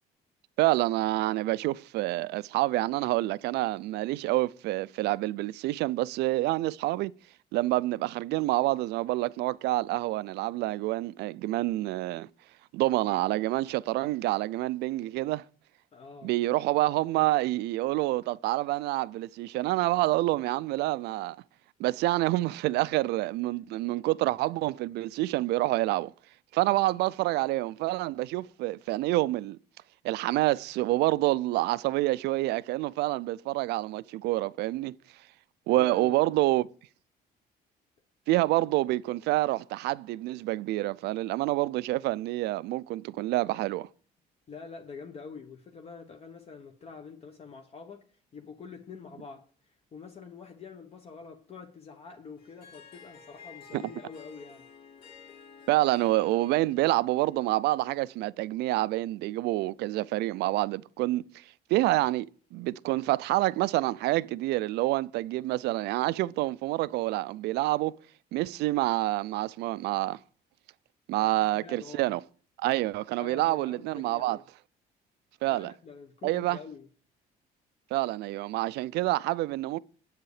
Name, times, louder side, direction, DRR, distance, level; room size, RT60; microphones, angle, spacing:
voice 1, 0.6-7.1 7.5-12.3 12.7-15.4 16.2-21.4 21.8-26.1 26.5-29.6 30.0-34.9 35.7-36.7 38.3-43.9 53.7-53.8 55.7-61.4 61.7-67.9 68.3-70.2 71.1-72.2 72.6-74.4 75.4-75.7 76.2-76.6 77.9-79.8, right 18 dB, 80° right, 0.4 m, -27 dB
voice 2, 15.9-16.4 35.8-36.3 44.5-48.0 48.3-54.7 71.2-72.1 73.2-74.4 75.5-76.9, left 5 dB, 35° left, 1.0 m, -46 dB
Harp, 52.4-58.2, left 6 dB, 65° left, 2.9 m, -53 dB
8.2 x 7.7 x 4.8 m
cardioid pair, 110°, 17 cm